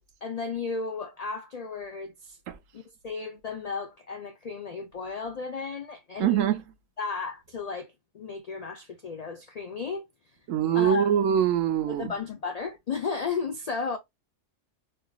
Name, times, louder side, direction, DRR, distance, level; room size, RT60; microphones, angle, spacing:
voice 1, 0.0-2.4 2.7-6.6 7.0-10.1 10.7-11.2 11.9-14.0, left 5 dB, 85° left, 0.3 m, -34 dB
voice 2, 6.2-6.6 10.5-12.1, right 9 dB, 90° right, 1.0 m, -23 dB
4.5 x 2.5 x 2.3 m
omnidirectional pair, 1.3 m